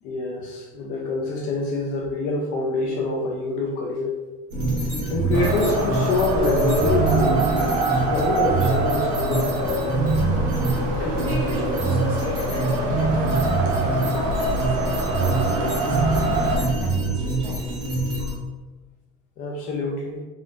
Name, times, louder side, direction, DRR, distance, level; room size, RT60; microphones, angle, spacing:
voice 1, 0.0-4.2 5.1-7.4 7.9-9.9 11.0-11.2 19.4-20.2, left 2 dB, 40° left, 0 dB, 0.4 m, -26 dB
sound 1, 4.5-18.3, right 2 dB, 50° right, 1.4 m, -24 dB
Wind, 5.3-16.5, right 1 dB, 65° right, 0.8 m, -26 dB
voice 2, 11.2-17.8, right 1 dB, 25° right, -4 dB, 0.9 m, -36 dB
3.8 x 3.0 x 2.4 m, 1.2 s
cardioid pair, 175°, 21 cm